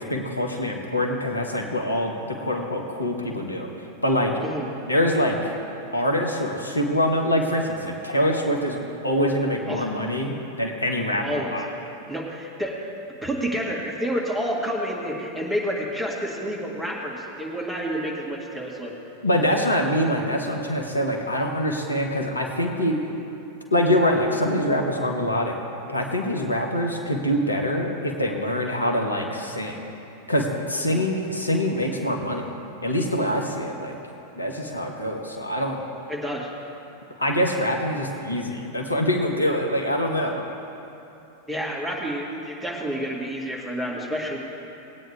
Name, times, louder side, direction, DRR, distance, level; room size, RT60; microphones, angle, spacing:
voice 1, 0.0-3.7 4.0-4.3 4.9-5.5 5.9-11.7 19.2-23.0 23.7-25.5 25.9-29.8 30.3-32.5 32.8-34.0 34.3-35.8 37.2-40.4, equal, 80° left, 1 dB, 1.3 m, -24 dB
voice 2, 11.2-11.6 12.1-12.9 13.2-18.9 30.9-31.0 36.1-36.5 41.5-44.4, equal, ahead, -3 dB, 1.9 m, -29 dB
19.5 x 9.0 x 3.5 m, 2.9 s
figure-of-eight pair, 90°, 0 cm